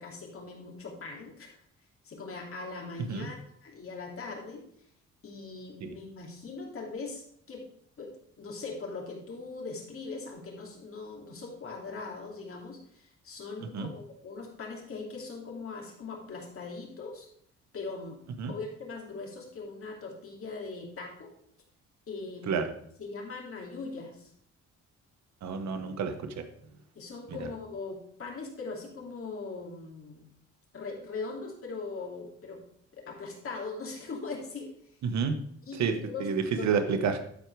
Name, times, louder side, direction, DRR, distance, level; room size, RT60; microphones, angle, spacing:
voice 1, 0.0-1.6 2.0-3.4 3.6-4.6 5.2-7.2 7.5-7.6 8.0-8.1 8.4-17.3 17.7-18.2 18.5-21.3 22.1-22.7 23.0-24.3 26.9-30.2 30.7-32.6 32.9-34.7 35.7-36.9, left 4 dB, 45° left, -1 dB, 2.8 m, -40 dB
voice 2, 25.4-26.4 27.4-27.5 35.0-35.4 35.8-37.2, right 6 dB, 65° right, 7 dB, 1.1 m, -29 dB
12.5 x 4.5 x 4.7 m, 0.67 s
cardioid pair, 90°, 30 cm